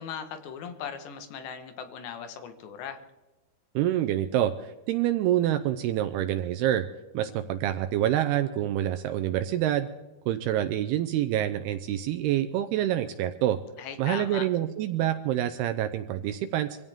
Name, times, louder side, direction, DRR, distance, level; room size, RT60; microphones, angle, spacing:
voice 1, 0.0-3.0 13.8-14.5, left 8 dB, 90° left, 8 dB, 3.7 m, -38 dB
voice 2, 3.8-6.9 7.1-9.9 10.3-13.6 14.0-16.8, right 12 dB, 80° right, 8 dB, 2.6 m, -27 dB
24.5 x 16.5 x 3.7 m, 1.1 s
omnidirectional pair, 4.8 m